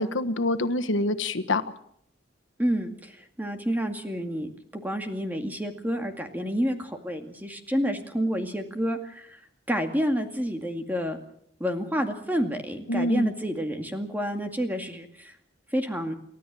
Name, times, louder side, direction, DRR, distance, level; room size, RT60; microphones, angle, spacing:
voice 1, 0.0-1.6 12.9-13.3, left 2 dB, 90° left, 11 dB, 1.4 m, -26 dB
voice 2, 2.6-9.4 9.7-11.2 11.6-15.3 15.7-16.1, equal, 10° right, 5 dB, 2.2 m, -29 dB
29.0 x 13.0 x 7.6 m, 0.70 s
head